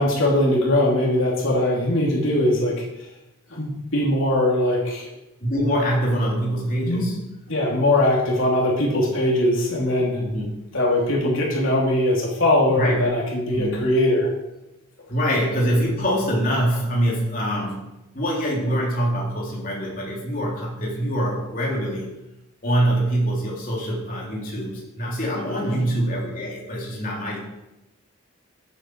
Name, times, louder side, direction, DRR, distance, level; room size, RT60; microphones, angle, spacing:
voice 1, 0.0-2.8 3.5-5.1 6.9-7.0 7.5-10.2 10.7-14.3 25.7-25.9, left 1 dB, 75° left, -3 dB, 3.1 m, -21 dB
voice 2, 5.4-7.2 10.2-10.5 12.8-13.1 13.5-13.8 15.1-17.9 18.1-22.1 22.6-27.4, equal, 40° left, -3 dB, 3.3 m, -24 dB
14.5 x 8.3 x 4.7 m, 0.95 s
head